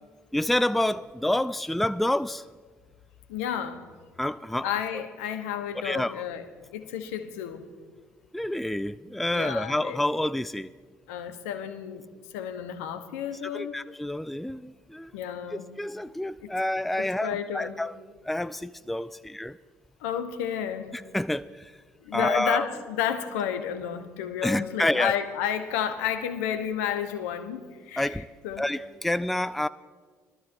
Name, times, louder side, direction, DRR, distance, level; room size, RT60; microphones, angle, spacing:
voice 1, 0.3-2.4 4.2-4.7 5.8-6.2 8.3-10.7 13.4-15.1 15.5-18.0 18.2-19.6 20.9-21.7 22.1-22.7 24.4-25.1 28.0-28.3 28.6-29.7, left 1 dB, ahead, 15 dB, 0.3 m, -28 dB
voice 2, 3.3-3.9 4.6-6.5 6.7-7.7 9.3-10.0 11.1-12.1 12.3-13.7 15.1-15.8 17.0-17.8 20.0-21.0 22.0-28.6, left 9 dB, 75° left, 9 dB, 0.9 m, -31 dB
22.5 x 13.0 x 2.6 m, 1.5 s
figure-of-eight pair, 45°, 8 cm